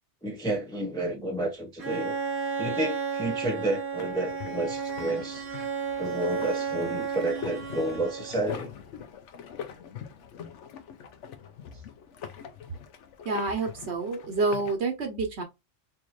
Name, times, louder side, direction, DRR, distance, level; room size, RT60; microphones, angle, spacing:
voice 1, 0.2-2.1 2.6-5.4 6.0-8.7, right 2 dB, 5° left, 0.5 m, -30 dB
Bowed string instrument, 1.8-8.5, right 6 dB, 45° right, 1.2 m, -33 dB
sound 1, 4.0-14.8, left 8 dB, 75° left, 1.0 m, -43 dB
voice 2, 13.2-15.4, right 3 dB, 65° right, 1.1 m, -28 dB
4.4 x 2.8 x 2.3 m
omnidirectional pair, 1.3 m